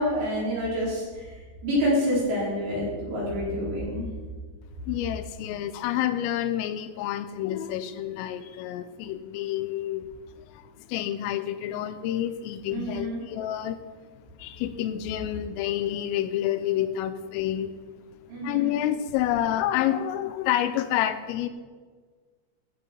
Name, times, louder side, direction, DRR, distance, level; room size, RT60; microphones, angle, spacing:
voice 1, 0.0-1.4 1.6-4.1 12.7-13.2 18.3-18.8, equal, 60° right, -7 dB, 6.5 m, -27 dB
voice 2, 4.9-10.1 10.5-13.8 14.4-17.7 18.4-21.5, left 12 dB, 85° left, 11 dB, 3.3 m, -28 dB
14.0 x 8.9 x 5.3 m, 1.5 s
omnidirectional pair, 5.9 m